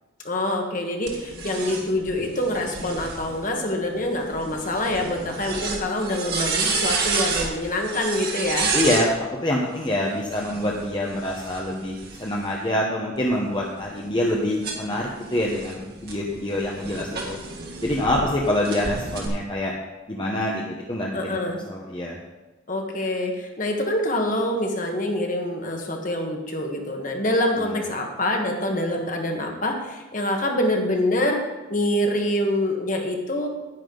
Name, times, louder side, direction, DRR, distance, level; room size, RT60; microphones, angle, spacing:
voice 1, 0.2-8.7 18.1-18.2 21.1-21.6 22.7-31.4 31.7-33.5, left 1 dB, 40° left, 2 dB, 1.4 m, -25 dB
sound 1, 1.1-9.1 10.2-12.6 13.2-18.2 18.6-19.3, right 4 dB, 50° right, 1.8 m, -31 dB
voice 2, 8.7-9.1 9.4-17.4 17.8-19.7 20.1-21.4 21.7-22.2 27.6-27.8, left 1 dB, 25° left, -2 dB, 0.9 m, -26 dB
10.0 x 9.9 x 3.9 m, 1.1 s
head